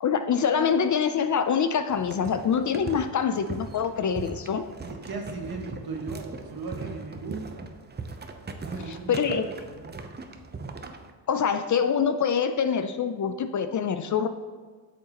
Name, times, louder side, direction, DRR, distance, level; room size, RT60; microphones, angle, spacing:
voice 1, 0.0-4.7 8.9-9.4 11.3-14.3, left 7 dB, 45° left, 9 dB, 0.5 m, -25 dB
sound 1, 1.9-11.1, right 3 dB, 25° right, 0.7 m, -40 dB
voice 2, 4.8-7.7 8.6-9.4 9.7-10.0, right 3 dB, 55° right, 2 dB, 1.6 m, -37 dB
8.9 x 6.3 x 3.0 m, 1.5 s
cardioid pair, 80°, 44 cm